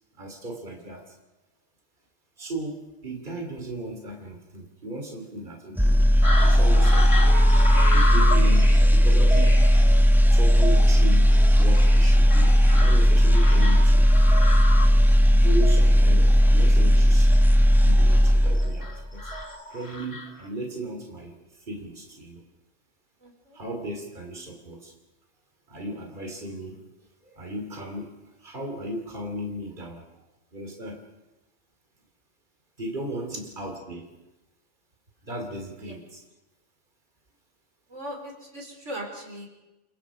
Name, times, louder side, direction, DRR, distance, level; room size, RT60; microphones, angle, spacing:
voice 1, 0.2-1.1 2.4-6.0 6.4-9.6 10.3-14.2 15.3-17.3 17.7-19.3 19.7-22.4 23.5-24.9 25.7-26.8 27.2-30.1 30.5-31.0 32.8-34.1 35.2-36.2, right 1 dB, 45° right, 2 dB, 3.3 m, -36 dB
sound 1, 5.8-18.9 19.2-19.4, equal, ahead, 0.9 m, -17 dB
sound 2, 6.2-20.5, left 1 dB, 25° left, 1.8 m, -33 dB
voice 2, 23.2-23.6 35.8-35.9 37.9-39.5, equal, 90° right, 1 dB, 5.1 m, -38 dB
29.0 x 25.0 x 5.1 m, 1.0 s
omnidirectional pair, 1.2 m